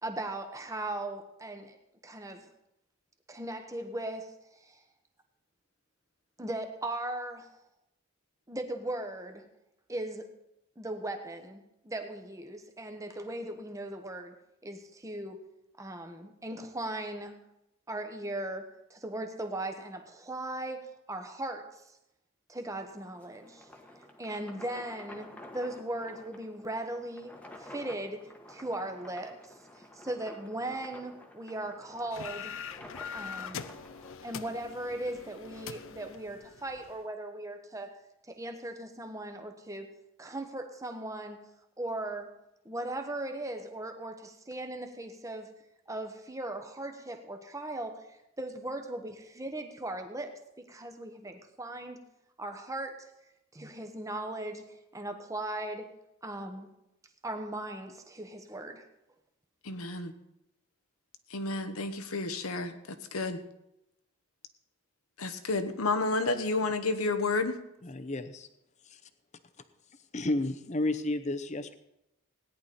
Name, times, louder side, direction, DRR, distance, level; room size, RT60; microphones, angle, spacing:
voice 1, 0.0-1.8 2.0-2.5 3.3-4.3 4.6-4.8 6.4-7.6 8.5-9.4 9.9-10.3 10.8-14.3 14.6-15.4 15.8-17.3 17.9-21.8 22.5-23.7 24.2-28.2 28.5-29.4 29.8-32.5 33.1-33.6 34.2-37.9 38.3-39.9 40.2-41.4 41.8-42.3 42.6-45.5 45.9-50.4 50.7-52.0 52.4-53.1 53.5-55.9 56.2-56.7 57.2-58.8, right 1 dB, 15° right, 6 dB, 1.1 m, -38 dB
sound 1, 22.9-34.1, left 1 dB, 5° left, 1.2 m, -51 dB
sound 2, 32.1-37.0, left 7 dB, 65° left, 0.5 m, -43 dB
voice 2, 59.6-60.1 61.3-62.7 63.1-63.4 65.2-67.5, left 3 dB, 85° left, 9 dB, 1.1 m, -30 dB
voice 3, 67.8-68.5 68.9-69.0 70.1-71.7, left 2 dB, 35° left, 10 dB, 0.7 m, -32 dB
17.5 x 10.5 x 4.2 m, 0.87 s
head